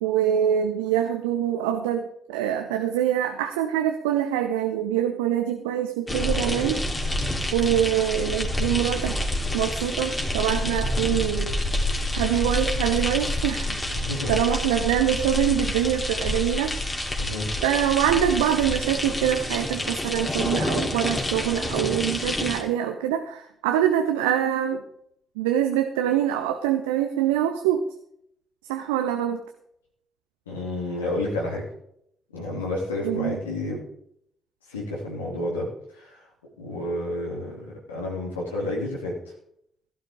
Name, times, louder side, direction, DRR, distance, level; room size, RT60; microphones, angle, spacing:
voice 1, 0.0-6.8 7.5-9.2 9.5-11.5 12.1-13.8 14.3-16.8 17.6-24.8 25.4-27.8 28.7-29.4 33.0-33.4, right 10 dB, 70° right, 6 dB, 0.8 m, -24 dB
sound 1, 6.1-22.6, left 1 dB, 20° left, 2.9 m, -28 dB
voice 2, 14.0-14.3 17.2-17.5 30.5-31.7 32.3-33.8 34.7-35.7 36.0-36.2 36.6-39.2, left 1 dB, 80° left, -4 dB, 2.8 m, -30 dB
16.0 x 12.0 x 3.6 m, 0.71 s
figure-of-eight pair, 40°, 0 cm